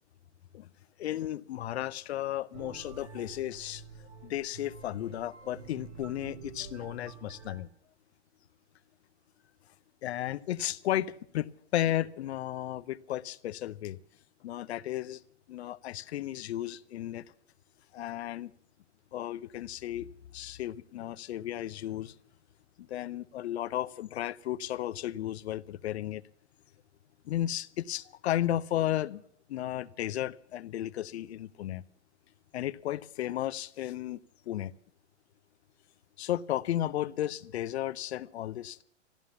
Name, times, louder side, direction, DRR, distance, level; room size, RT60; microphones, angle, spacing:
voice 1, 1.0-3.8 4.2-7.7 10.0-11.5 11.7-14.0 14.4-15.2 15.5-17.2 17.9-18.5 19.1-20.1 20.3-22.1 22.8-26.2 27.3-29.2 29.5-31.8 32.5-34.2 34.5-34.7 36.2-38.8, left 13 dB, 60° left, 16 dB, 0.7 m, -34 dB
sound 1, 2.5-7.6, right 5 dB, 70° right, 2.6 m, -48 dB
13.5 x 13.0 x 7.1 m, 0.66 s
hypercardioid pair, 125°, 36 cm